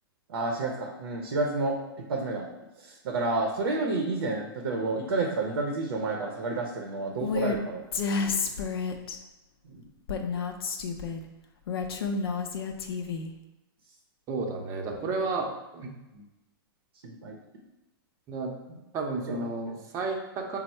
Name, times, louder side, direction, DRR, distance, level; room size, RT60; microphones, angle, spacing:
voice 1, 0.3-1.8 2.1-2.5 2.8-7.8 8.2-8.5 9.7-9.8 16.1-16.2 17.0-17.4 18.7-18.8 19.3-19.4, right 3 dB, 75° right, 2 dB, 0.6 m, -30 dB
Female speech woman speaking, 7.2-7.6 7.9-9.2 10.1-11.2 11.7-13.3, left 5 dB, 80° left, 0.5 m, -30 dB
voice 2, 14.3-15.5 15.7-15.9 18.3-18.5 18.9-20.6, right 3 dB, 25° right, 1 dB, 0.6 m, -32 dB
4.3 x 2.0 x 4.2 m, 0.98 s
hypercardioid pair, 135°, 13 cm